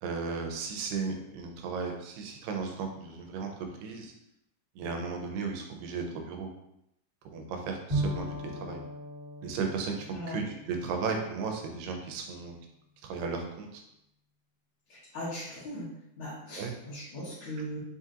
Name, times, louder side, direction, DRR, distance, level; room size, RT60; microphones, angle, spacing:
voice 1, 0.0-3.5 3.8-4.1 4.8-6.5 7.3-8.3 8.6-8.8 9.4-12.5 13.0-13.8 16.6-16.7, right 5 dB, 85° right, 3 dB, 2.3 m, -35 dB
Bowed string instrument, 7.9-11.6, right 1 dB, 45° right, 1.4 m, -37 dB
voice 2, 14.9-15.9 16.2-17.8, equal, 75° left, -9 dB, 1.2 m, -39 dB
5.6 x 2.7 x 2.5 m, 0.79 s
omnidirectional pair, 3.9 m